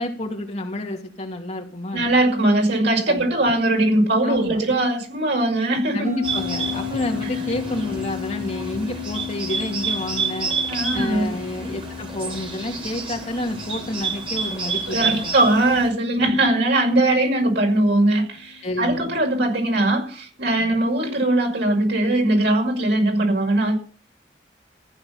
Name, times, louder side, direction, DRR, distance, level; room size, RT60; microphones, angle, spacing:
voice 1, 0.0-2.1 3.1-3.3 4.2-4.6 5.9-10.5 10.9-15.3 16.2-16.4 18.6-19.1 20.6-20.7, left 1 dB, 40° left, 1 dB, 2.5 m, -29 dB
voice 2, 1.9-6.1 10.7-11.3 14.9-23.7, right 1 dB, 75° right, 1 dB, 6.0 m, -20 dB
sound 1, 6.0-18.8, left 9 dB, 55° right, 3.3 m, -35 dB
Bird, 6.2-15.9, right 5 dB, 30° right, 3.5 m, -29 dB
15.0 x 9.7 x 5.7 m, 0.40 s
head